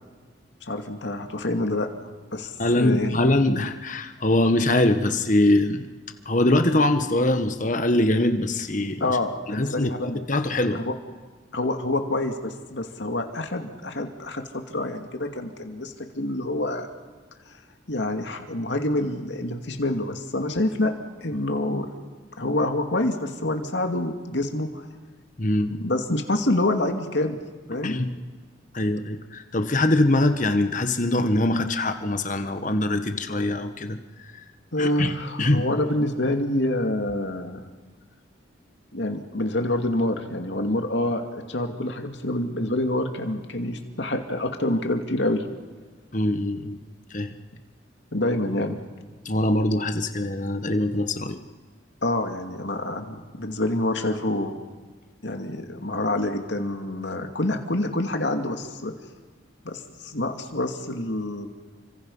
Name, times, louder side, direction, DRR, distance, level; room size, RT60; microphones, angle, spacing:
voice 1, 0.7-1.9 2.3-3.2 9.0-10.2 10.7-10.9 11.5-16.9 17.9-20.9 21.2-21.9 22.4-24.8 25.7-27.4 27.7-28.0 34.7-37.7 38.9-45.4 48.1-48.8 52.0-54.6 55.2-58.9 59.6-61.5, left 1 dB, 70° left, 5 dB, 2.5 m, -27 dB
voice 2, 2.6-5.8 6.2-9.0 9.5-10.8 25.4-25.7 27.8-28.1 28.7-34.0 34.8-35.1 35.4-35.6 46.1-46.8 47.1-47.3 49.2-51.4, left 1 dB, 40° left, 7 dB, 1.5 m, -23 dB
30.0 x 25.5 x 5.7 m, 1.4 s
head